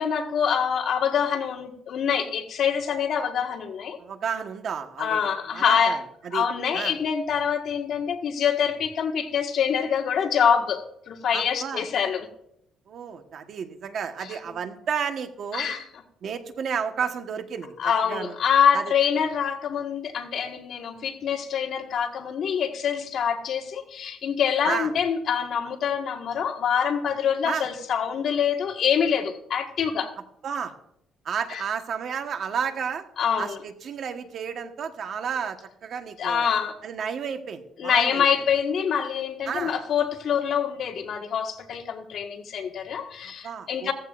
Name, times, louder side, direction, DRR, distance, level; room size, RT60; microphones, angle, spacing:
voice 1, 0.0-4.0 5.0-6.0 6.3-12.3 15.5-15.8 17.8-30.1 31.5-31.6 33.2-33.6 36.2-36.8 37.8-43.9, left 7 dB, 60° left, 3 dB, 1.7 m, -25 dB
voice 2, 4.0-5.2 5.5-6.4 6.7-7.0 11.3-11.9 12.9-15.7 16.2-17.7 18.1-18.3 18.7-18.9 24.6-24.9 27.4-27.7 30.4-30.7 31.2-33.1 33.4-36.5 36.8-38.2 39.4-39.7 43.2-43.9, right 7 dB, 55° right, 6 dB, 1.4 m, -32 dB
16.5 x 14.5 x 2.6 m, 0.73 s
cardioid pair, 125°, 0 cm